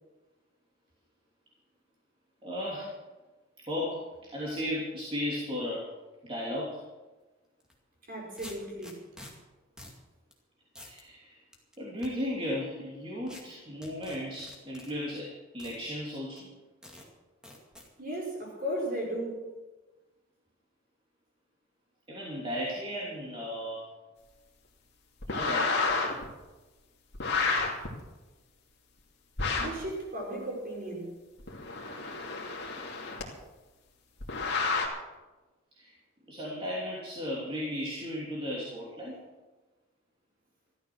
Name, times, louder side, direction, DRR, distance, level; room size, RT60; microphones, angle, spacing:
voice 1, 2.4-3.0 3.6-4.0 4.3-5.9 6.2-6.8 10.8-11.4 11.8-16.5 22.1-23.8 25.3-25.9 35.7-35.9 36.3-39.2, left 1 dB, 25° right, -6 dB, 3.1 m, -35 dB
sound 1, 7.6-7.7 8.4-9.3 9.8-10.0 10.3-10.4 10.7-11.0 11.5-12.1 13.3-13.4 13.8-14.9 15.6-15.8 16.4-16.5 16.8-17.1 17.4-17.9, left 1 dB, 5° right, 2.2 m, -48 dB
voice 2, 8.1-9.0 18.0-19.5 29.6-31.2, right 1 dB, 45° right, -2 dB, 5.4 m, -35 dB
sound 2, 25.2-26.2 27.1-27.9 29.4-29.8 31.4-33.2 34.2-34.9, left 4 dB, 55° left, 2.6 m, -30 dB
14.0 x 13.0 x 6.3 m, 1.2 s
head